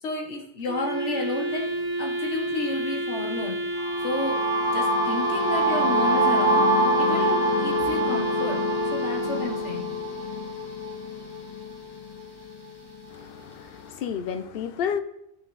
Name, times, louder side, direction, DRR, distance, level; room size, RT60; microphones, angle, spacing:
voice 1, 0.0-1.7 2.0-3.6 4.0-4.4 4.7-8.6 8.9-9.9, left 3 dB, 80° left, 1.4 m, -31 dB
Wind instrument woodwind instrument, 0.7-9.9, right 1 dB, 85° right, 1.7 m, -30 dB
sound 1, 3.8-11.7, equal, 25° left, 0.9 m, -25 dB
voice 2, 13.1-15.0, left 8 dB, 65° left, 0.7 m, -31 dB
10.5 x 4.1 x 3.1 m
omnidirectional pair, 1.2 m